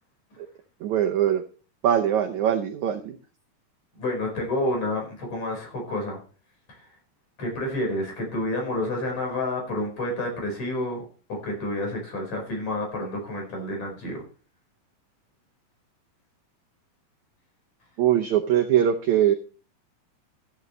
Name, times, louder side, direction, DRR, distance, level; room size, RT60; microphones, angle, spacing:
voice 1, 0.8-1.4 1.8-3.1 18.0-19.3, right 10 dB, 90° right, 5 dB, 1.6 m, -22 dB
voice 2, 4.0-6.2 6.7-6.9 7.4-11.0 11.3-14.2, left 1 dB, 45° left, 1 dB, 6.1 m, -29 dB
13.5 x 11.0 x 3.2 m, 0.39 s
omnidirectional pair, 4.5 m